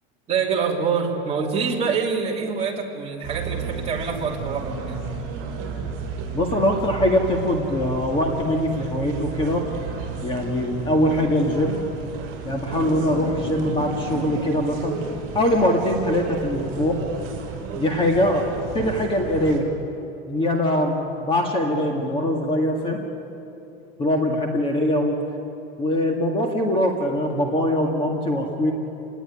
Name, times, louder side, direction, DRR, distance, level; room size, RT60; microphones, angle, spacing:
voice 1, 0.3-5.1, right 5 dB, 20° right, -2 dB, 3.0 m, -25 dB
sound 1, 3.2-19.6, right 5 dB, 45° right, 5.9 m, -33 dB
voice 2, 6.3-9.6 10.2-11.8 12.4-15.0 15.3-17.0 17.7-18.5 18.7-19.7 20.3-23.0 24.0-25.2 25.8-28.7, left 1 dB, 15° left, 2 dB, 2.0 m, -22 dB
28.0 x 19.0 x 9.7 m, 2.8 s
supercardioid pair, 160°, 31 cm